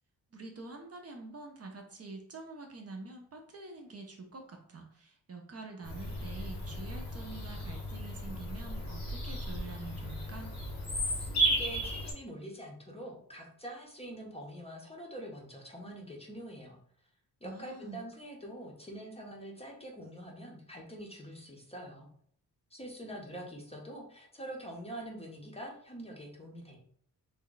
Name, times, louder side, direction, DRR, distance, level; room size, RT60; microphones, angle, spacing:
voice 1, 0.3-10.5 17.4-18.0, right 3 dB, 40° right, 2 dB, 0.6 m, -46 dB
Bird vocalization bird call bird song, 5.8-12.1, right 1 dB, 85° left, 1.1 m, -34 dB
voice 2, 11.2-16.8 17.4-22.1 22.7-26.8, right 1 dB, 15° left, -1 dB, 0.7 m, -45 dB
3.4 x 2.2 x 3.8 m, 0.63 s
wide cardioid pair, 120°, 39 cm